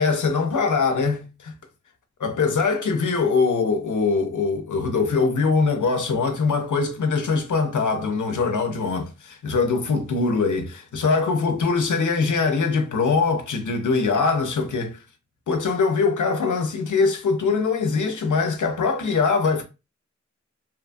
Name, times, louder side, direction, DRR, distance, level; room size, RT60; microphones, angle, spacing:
voice 1, 0.0-1.5 2.2-15.0 15.5-19.6, left 4 dB, 85° left, 0.6 m, -22 dB
2.8 x 2.2 x 2.5 m
wide cardioid pair, 55°, 29 cm